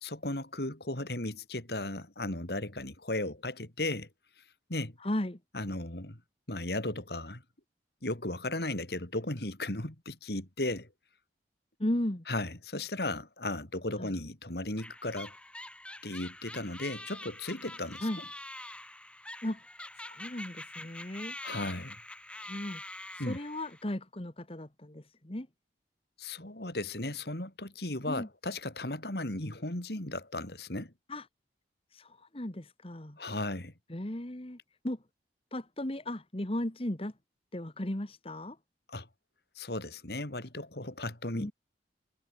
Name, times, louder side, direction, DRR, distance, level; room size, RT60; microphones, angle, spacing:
voice 1, 0.0-4.1 4.7-5.0 5.5-6.2 6.5-7.4 8.0-10.9 12.3-15.3 16.0-18.3 21.4-22.0 23.2-23.4 26.2-30.9 33.2-33.7 38.9-39.1 39.6-41.5, left 2 dB, 65° left, 3.5 m, -36 dB
voice 2, 5.0-5.4 11.8-12.2 14.0-14.1 18.0-18.2 19.4-19.6 20.0-21.3 22.3-22.8 23.1-25.5 28.1-28.3 31.1-31.2 31.9-33.2 33.9-34.6 34.8-35.0 35.5-37.1 37.5-38.6 41.3-41.5, left 1 dB, 30° left, 1.6 m, -36 dB
sound 1, 14.8-23.8, left 1 dB, 5° left, 1.6 m, -45 dB
head